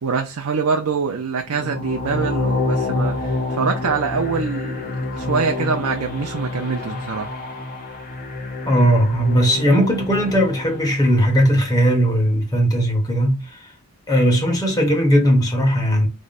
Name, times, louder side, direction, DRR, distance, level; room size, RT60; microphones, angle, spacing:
voice 1, 0.0-7.3, right 5 dB, 90° right, 0.5 m, -24 dB
sound 1, 1.5-11.6, left 2 dB, 40° left, 0.8 m, -27 dB
voice 2, 8.6-13.7 14.1-16.1, equal, 15° left, 1.1 m, -18 dB
3.6 x 2.1 x 4.0 m
head